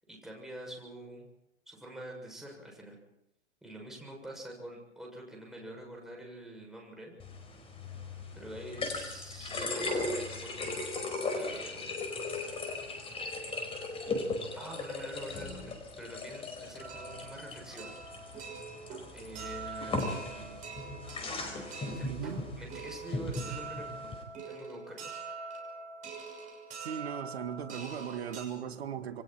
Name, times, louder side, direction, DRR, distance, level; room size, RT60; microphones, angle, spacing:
voice 1, 0.1-1.3 1.7-3.0 3.6-7.2 8.3-10.7 11.3-12.0 14.5-17.9 19.1-20.7 21.6-24.1 24.5-25.1, right 1 dB, ahead, 7.2 m, -46 dB
sound 1, 7.2-24.2, left 2 dB, 15° left, 4.8 m, -38 dB
sound 2, 16.8-28.4, right 4 dB, 20° right, 6.3 m, -44 dB
voice 2, 22.0-22.5 26.8-29.2, right 8 dB, 60° right, 2.0 m, -38 dB
28.0 x 23.5 x 4.5 m
figure-of-eight pair, 120°, 35 cm